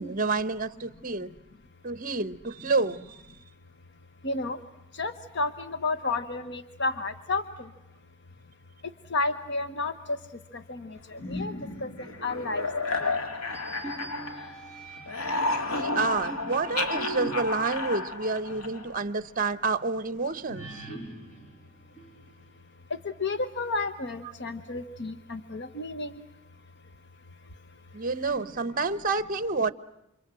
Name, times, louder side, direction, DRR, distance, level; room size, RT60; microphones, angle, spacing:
voice 1, 0.0-1.3 1.8-3.4 15.7-20.7 27.9-29.7, right 3 dB, 40° right, 1.1 m, -29 dB
voice 2, 4.2-4.6 5.0-7.4 9.1-9.9 10.7-11.5 11.8-11.9 12.2-12.6 13.0-13.2 23.2-26.2, left 3 dB, 55° left, 1.1 m, -31 dB
sound 1, 11.2-14.7 15.0-19.0, left 2 dB, 80° left, 2.6 m, -32 dB
sound 2, 13.5-15.3 15.9-18.9 19.3-19.4 20.5-22.5, right 2 dB, 35° left, 5.6 m, -42 dB
29.0 x 27.0 x 7.6 m
head